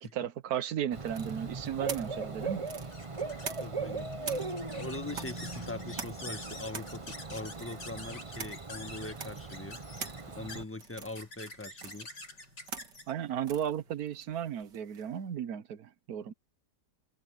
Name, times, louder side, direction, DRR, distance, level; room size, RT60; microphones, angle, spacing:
voice 1, 0.0-2.6 13.1-16.3, right 9 dB, 65° right, 1.3 m, -35 dB
Bird / Cricket, 0.9-10.6, right 4 dB, 25° right, 0.9 m, -39 dB
sound 1, 1.1-3.9 4.2-15.2, right 6 dB, 80° right, 2.4 m, -45 dB
sound 2, 2.8-14.7, left 2 dB, 85° left, 8.0 m, -48 dB
voice 2, 3.6-9.8 10.3-12.1, left 2 dB, 10° left, 1.5 m, -42 dB
omnidirectional pair, 1.8 m